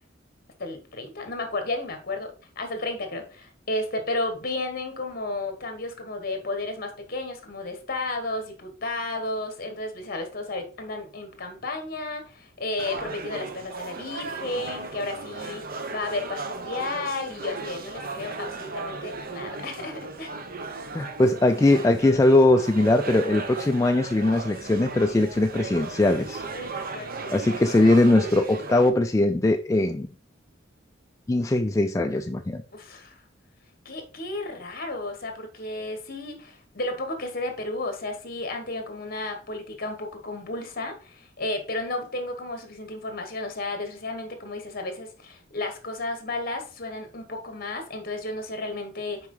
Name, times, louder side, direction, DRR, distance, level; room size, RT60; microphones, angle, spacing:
voice 1, 0.6-15.6 15.9-20.3 26.4-27.4 32.7-33.2 33.8-49.3, left 2 dB, 50° left, 6 dB, 1.4 m, -33 dB
sound 1, 12.8-28.9, right 3 dB, 50° right, 0.8 m, -36 dB
voice 2, 20.9-26.8 27.3-30.1 31.3-32.6, left 2 dB, 15° left, 5 dB, 0.3 m, -21 dB
6.0 x 4.7 x 3.8 m, 0.38 s
head